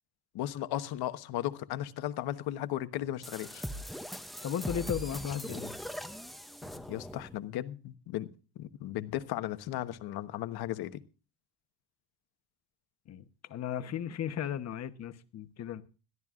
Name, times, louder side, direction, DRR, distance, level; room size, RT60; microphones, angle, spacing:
voice 1, 0.3-3.6 6.7-8.3 8.6-11.0, left 13 dB, 65° left, 1.1 m, -36 dB
sound 1, 3.2-7.4, equal, ahead, 0.5 m, -40 dB
voice 2, 4.4-5.7 13.1-13.2 13.5-15.8, left 9 dB, 40° left, 1.0 m, -35 dB
21.5 x 14.0 x 2.4 m
cardioid pair, 170°, 41 cm